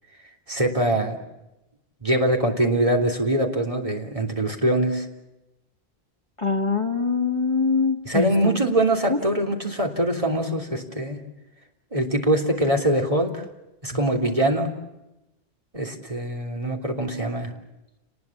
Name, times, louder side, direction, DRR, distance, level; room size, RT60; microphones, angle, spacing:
voice 1, 0.5-1.2 2.0-5.1 8.0-11.2 11.9-13.4 13.8-14.7 15.7-17.5, right 1 dB, 30° right, 2 dB, 3.3 m, -23 dB
voice 2, 6.4-8.6 9.1-9.2, left 4 dB, 30° left, 4 dB, 1.7 m, -23 dB
29.0 x 20.0 x 7.3 m, 0.92 s
omnidirectional pair, 1.1 m